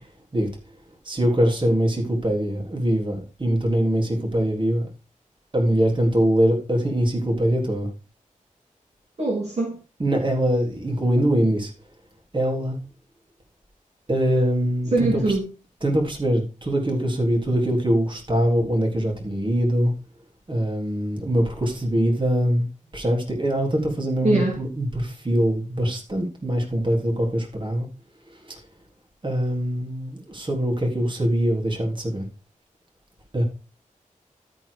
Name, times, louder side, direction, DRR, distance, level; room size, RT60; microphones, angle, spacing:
voice 1, 1.1-4.9 5.5-7.9 10.0-11.7 12.3-12.8 14.1-15.4 15.8-19.9 20.5-22.7 22.9-27.9 28.3-28.6 29.2-32.2 33.3-33.4, equal, 35° right, 3.5 m, -23 dB
voice 2, 9.2-9.8 14.9-15.4 24.2-24.6, right 2 dB, 55° right, 2.8 m, -22 dB
13.0 x 4.5 x 5.0 m
wide cardioid pair, 70°, 14 cm